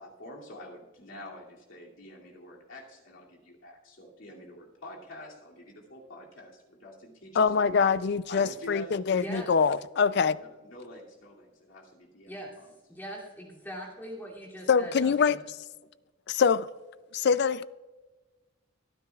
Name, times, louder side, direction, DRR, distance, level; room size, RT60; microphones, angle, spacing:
voice 1, 0.0-7.8 8.3-9.7 10.1-12.6, left 1 dB, 75° left, 2.6 m, -47 dB
voice 2, 7.4-10.4 14.7-15.4 16.3-16.7 17.1-17.6, left 6 dB, 55° left, 0.4 m, -24 dB
voice 3, 9.1-9.5 12.3-12.5 12.9-15.4, equal, 10° left, 2.7 m, -41 dB
24.5 x 9.8 x 2.4 m
head